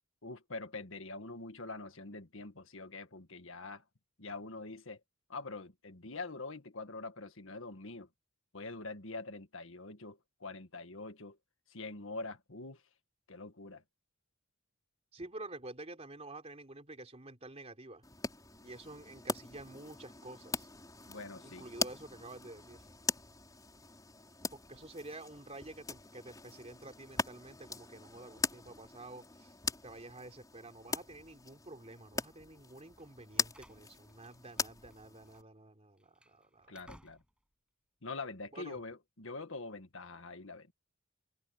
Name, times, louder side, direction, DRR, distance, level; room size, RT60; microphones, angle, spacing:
voice 1, 0.2-3.8 4.2-5.0 5.3-8.1 8.5-11.4 11.7-12.8 13.3-13.8 21.1-21.7 36.7-37.2 38.0-40.7, left 3 dB, 65° left, 1.9 m, -44 dB
voice 2, 15.1-18.0 18.6-20.7 21.4-22.8 24.5-29.5 29.8-36.8 38.5-38.8, right 2 dB, 30° right, 3.4 m, -49 dB
sound 1, 18.0-35.4, left 4 dB, 15° left, 5.7 m, -41 dB
Slam, 33.0-35.0 35.3-35.4 35.9-37.5, right 1 dB, 5° right, 7.5 m, -61 dB
head